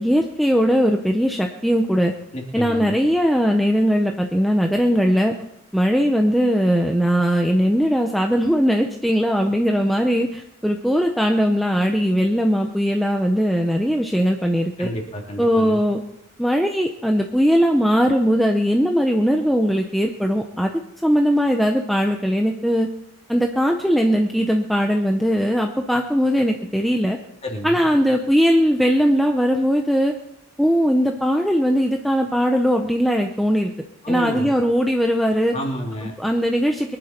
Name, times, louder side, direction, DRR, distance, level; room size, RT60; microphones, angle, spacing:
voice 1, 0.0-2.1 2.5-5.3 5.7-14.9 15.4-16.0 16.4-20.7 21.0-22.9 23.3-27.2 27.6-30.1 30.6-33.7 34.1-35.5 36.2-37.0, equal, ahead, 2 dB, 0.7 m, -19 dB
voice 2, 2.3-3.0 14.8-15.8 27.4-27.8 34.0-34.5 35.5-36.1, equal, 30° left, 0 dB, 2.7 m, -30 dB
23.0 x 11.0 x 4.4 m, 0.82 s
head